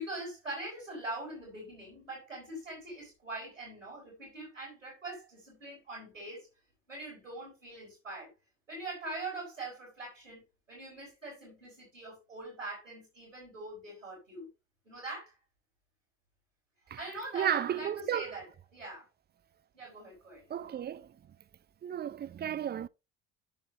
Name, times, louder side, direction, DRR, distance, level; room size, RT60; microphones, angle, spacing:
voice 1, 0.0-6.5 6.9-8.3 8.7-10.4 10.7-14.5 14.8-15.4 17.0-19.1 19.7-20.9, right 2 dB, 90° right, 5.1 m, -43 dB
voice 2, 17.3-18.4 20.5-21.1 21.8-22.9, right 10 dB, 25° right, 0.6 m, -33 dB
12.5 x 7.3 x 2.7 m
figure-of-eight pair, 55°, 37 cm